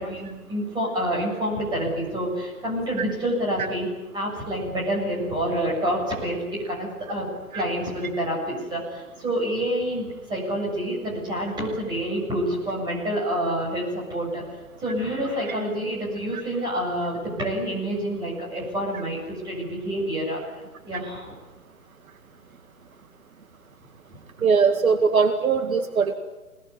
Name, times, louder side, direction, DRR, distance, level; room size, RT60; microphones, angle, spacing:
voice 1, 0.0-3.9 4.1-7.3 7.5-14.4 14.8-20.4 20.9-21.3, equal, 10° right, -3 dB, 7.5 m, -28 dB
voice 2, 24.4-26.1, right 5 dB, 65° right, 7 dB, 2.4 m, -20 dB
27.0 x 19.5 x 9.5 m, 1.1 s
hypercardioid pair, 165°, 44 cm